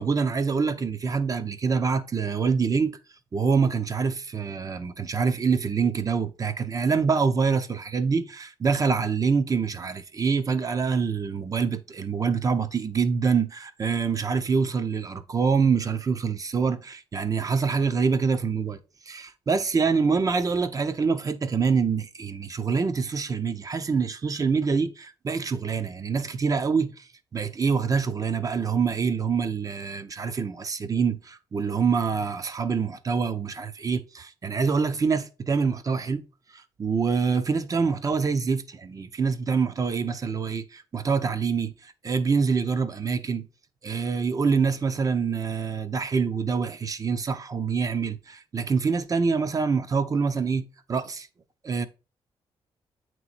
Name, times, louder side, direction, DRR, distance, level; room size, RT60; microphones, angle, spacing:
voice 1, 0.0-2.9 3.3-18.8 19.1-36.2 36.5-43.5 43.8-50.6 50.9-51.3 51.6-51.9, right 5 dB, 35° right, 0.6 m, -25 dB
8.7 x 3.1 x 4.1 m
cardioid pair, 100°, 10 cm